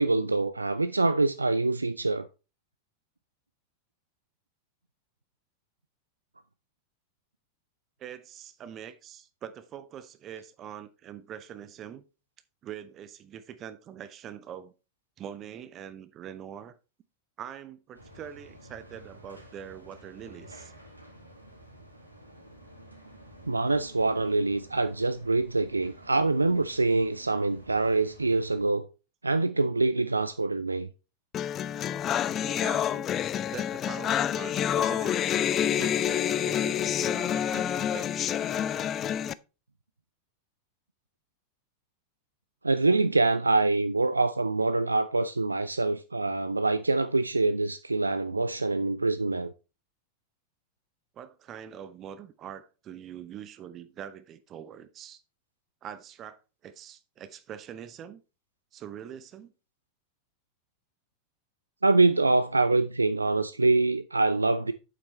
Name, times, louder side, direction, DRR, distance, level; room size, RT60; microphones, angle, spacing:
voice 1, 0.0-2.3 23.5-28.8 29.2-30.9 42.6-49.5 61.8-64.7, right 3 dB, 80° right, 0.4 m, -25 dB
voice 2, 8.0-12.0 12.6-14.7 15.2-16.7 17.4-20.7 32.4-33.1 33.5-35.2 35.6-38.3 51.1-55.2 55.8-58.2 58.7-59.5, right 9 dB, 30° right, 0.7 m, -43 dB
sound 1, 17.9-28.6, right 1 dB, 90° left, 2.1 m, -51 dB
sound 2, 31.3-39.3, left 10 dB, 30° left, 0.4 m, -28 dB
8.6 x 7.6 x 3.2 m
figure-of-eight pair, 90°, 0 cm